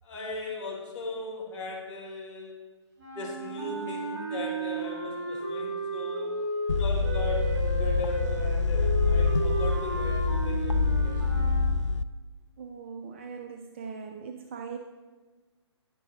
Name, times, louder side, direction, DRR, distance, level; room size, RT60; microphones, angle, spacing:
voice 1, 0.0-2.6 3.1-6.4 6.8-11.5, left 2 dB, 15° left, -7 dB, 2.4 m, -38 dB
sound 1, 3.0-11.7, right 3 dB, 45° right, 2.2 m, -34 dB
sound 2, 6.7-12.0, left 4 dB, 85° left, 0.4 m, -26 dB
voice 2, 12.6-14.8, right 6 dB, 25° right, 5 dB, 0.4 m, -40 dB
9.8 x 7.0 x 3.7 m, 1.3 s
figure-of-eight pair, 135°, 15 cm